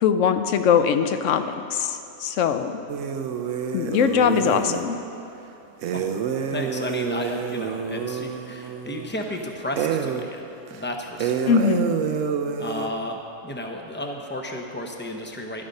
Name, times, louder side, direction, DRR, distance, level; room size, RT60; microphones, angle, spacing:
voice 1, 0.0-2.8 3.7-5.0 11.5-11.9, left 7 dB, 85° left, 8 dB, 1.0 m, -21 dB
sound 1, 2.9-4.9 5.8-9.4 9.8-10.3 10.7-10.8 11.2-12.9, right 7 dB, 80° right, 1.0 m, -28 dB
voice 2, 6.5-10.4 10.7-11.4 12.6-15.7, left 1 dB, 10° left, 2 dB, 0.7 m, -33 dB
12.0 x 8.8 x 5.3 m, 2.7 s
omnidirectional pair, 1.3 m